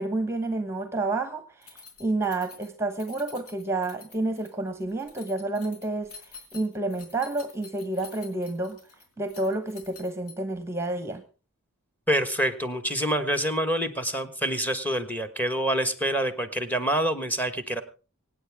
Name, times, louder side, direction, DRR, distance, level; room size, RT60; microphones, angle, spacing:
voice 1, 0.0-6.1 6.5-8.8 9.2-11.2, right 2 dB, 10° right, 9 dB, 1.1 m, -29 dB
Keys jangling, 1.6-10.6, left 4 dB, 75° left, 4.5 m, -49 dB
voice 2, 12.1-17.8, right 1 dB, 10° left, 10 dB, 1.4 m, -26 dB
25.0 x 9.2 x 3.6 m, 0.36 s
head